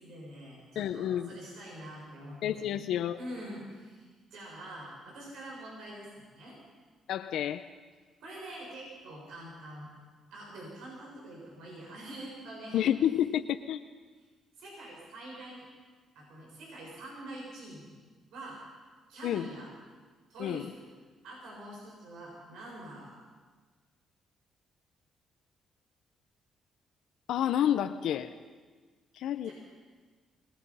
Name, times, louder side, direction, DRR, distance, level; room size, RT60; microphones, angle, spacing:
voice 1, 0.0-2.6 3.2-6.6 8.2-9.9 10.3-12.9 14.6-15.7 16.2-17.9 18.3-18.6 19.1-19.7 20.3-20.9 21.2-23.2 29.5-29.6, right 1 dB, 85° right, -3 dB, 6.9 m, -45 dB
voice 2, 0.8-1.4 2.4-3.2 7.1-7.7 12.7-13.8 19.2-19.5 20.4-20.7 27.3-28.3 29.1-29.5, left 10 dB, 80° left, 9 dB, 0.8 m, -29 dB
25.5 x 20.0 x 5.7 m, 1.4 s
cardioid pair, 90°, 0 cm